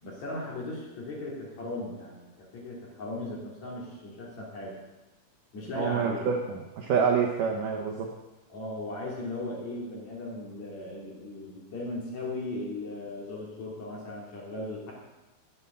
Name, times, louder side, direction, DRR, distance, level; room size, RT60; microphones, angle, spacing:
voice 1, 0.0-4.8 5.5-6.3 8.5-14.9, left 2 dB, 45° left, -4 dB, 3.5 m, -37 dB
voice 2, 5.8-8.1, right 6 dB, 85° right, 0 dB, 1.8 m, -27 dB
13.0 x 8.0 x 6.7 m, 1.1 s
omnidirectional pair, 5.2 m